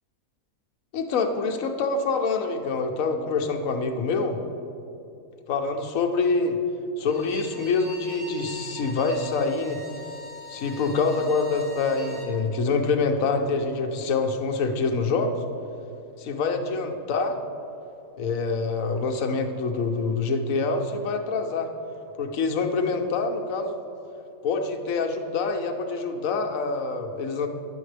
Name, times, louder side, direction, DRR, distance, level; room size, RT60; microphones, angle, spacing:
voice 1, 0.9-4.4 5.5-6.6 7.0-9.8 10.5-15.4 16.2-17.4 18.2-21.7 22.2-23.8 24.4-27.5, left 4 dB, 70° left, 4 dB, 1.0 m, -26 dB
Bowed string instrument, 7.0-12.3, equal, 15° left, 1.2 m, -42 dB
9.7 x 7.2 x 3.3 m, 2.7 s
omnidirectional pair, 1.5 m